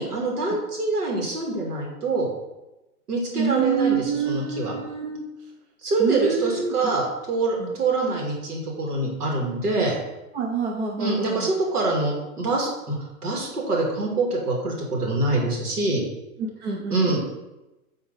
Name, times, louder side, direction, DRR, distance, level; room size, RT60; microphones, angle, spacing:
voice 1, 0.0-2.3 3.1-4.7 5.8-10.0 11.0-13.0 13.2-16.0 16.9-17.2, right 2 dB, 80° right, -1 dB, 2.6 m, -25 dB
voice 2, 3.3-5.2 6.0-6.7 7.6-7.8 10.3-11.5 16.4-17.2, right 6 dB, 50° right, 1 dB, 1.0 m, -27 dB
9.0 x 3.8 x 4.1 m, 1.0 s
hypercardioid pair, 140°, 45 cm